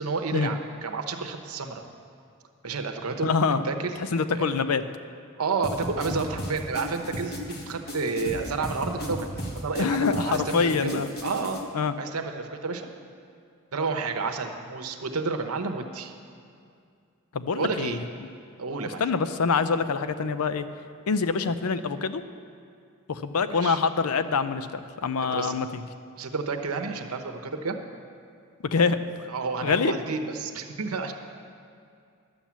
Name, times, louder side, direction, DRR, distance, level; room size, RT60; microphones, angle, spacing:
voice 1, 0.0-1.8 2.6-3.3 3.6-4.0 4.3-4.6 5.4-11.6 12.0-12.9 13.7-16.1 17.5-18.0 18.6-19.0 23.5-23.8 25.3-25.5 26.2-27.8 29.3-31.1, right 4 dB, 85° right, 6 dB, 0.9 m, -30 dB
voice 2, 3.2-3.6 4.0-4.8 9.8-11.1 11.7-12.0 17.3-18.0 19.0-20.7 21.1-22.2 23.1-25.8 28.7-29.3 29.6-29.9, left 5 dB, 85° left, 11 dB, 0.5 m, -25 dB
sound 1, 5.6-11.6, left 1 dB, 45° left, 1.3 m, -35 dB
11.5 x 7.2 x 7.3 m, 2.3 s
head